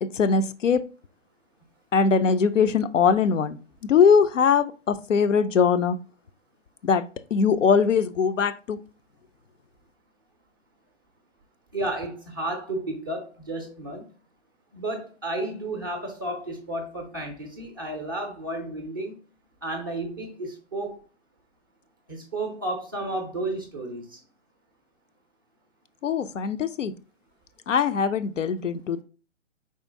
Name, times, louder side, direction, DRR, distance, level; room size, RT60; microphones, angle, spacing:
voice 1, 0.0-0.8 1.9-6.0 6.8-7.0 7.3-8.8 26.0-26.9 27.7-29.0, left 6 dB, 80° left, 0.5 m, -21 dB
voice 2, 11.7-14.0 14.7-19.2 19.6-21.0 22.1-24.2, right 2 dB, 20° right, 0.4 m, -32 dB
4.5 x 3.6 x 2.5 m
figure-of-eight pair, 125°, 37 cm